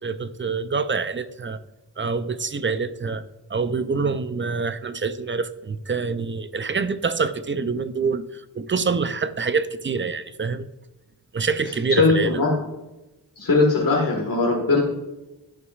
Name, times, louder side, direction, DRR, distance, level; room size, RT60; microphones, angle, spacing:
voice 1, 0.0-1.6 2.0-3.2 3.5-10.7 11.3-12.4, right 4 dB, 30° right, 0.4 m, -26 dB
voice 2, 11.9-12.6 13.4-14.8, left 3 dB, 50° left, 1.7 m, -19 dB
11.0 x 6.1 x 2.4 m
wide cardioid pair, 70°, 43 cm